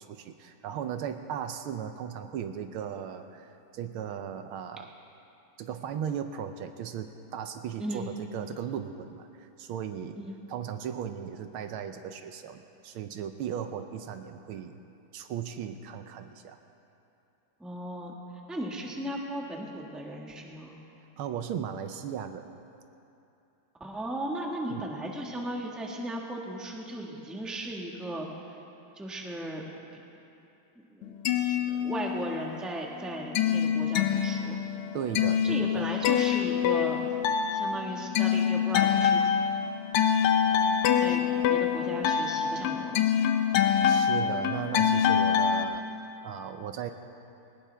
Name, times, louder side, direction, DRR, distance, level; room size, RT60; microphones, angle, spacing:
voice 1, 0.0-4.9 5.6-10.2 10.5-14.8 15.1-16.6 21.2-22.5 24.7-24.8 34.9-35.9 43.8-46.9, right 8 dB, 75° right, 8 dB, 1.5 m, -37 dB
voice 2, 7.8-8.2 10.1-10.4 17.6-18.1 18.5-20.8 23.8-28.3 28.9-29.6 29.9-30.0 30.7-34.6 35.4-37.0 37.5-39.3 41.0-41.2 41.5-43.1, right 1 dB, ahead, -1 dB, 1.1 m, -36 dB
sound 1, 31.0-32.5 32.8-45.6, left 8 dB, 90° left, 1.7 m, -26 dB
20.0 x 19.0 x 3.4 m, 2.8 s
omnidirectional pair, 2.4 m